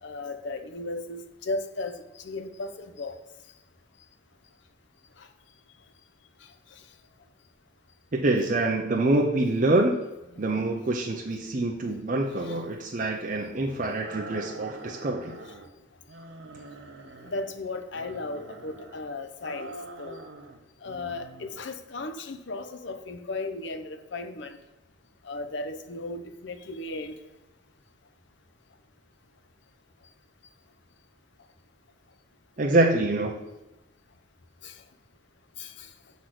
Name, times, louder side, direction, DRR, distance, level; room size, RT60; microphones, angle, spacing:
voice 1, 0.0-3.2 5.2-5.3 12.4-12.6 15.4-15.5 17.2-19.7 20.0-20.2 20.8-24.6 25.2-27.2 34.6-34.8 35.6-35.9, left 2 dB, 65° left, 0.6 m, -36 dB
voice 2, 8.1-10.0 10.4-15.3 32.6-33.3, right 2 dB, 40° right, 0.6 m, -25 dB
sound 1, 14.0-15.7 16.1-17.5 17.9-19.0 19.4-20.6 20.8-21.6, right 2 dB, 70° right, 0.8 m, -44 dB
6.3 x 4.1 x 5.9 m
head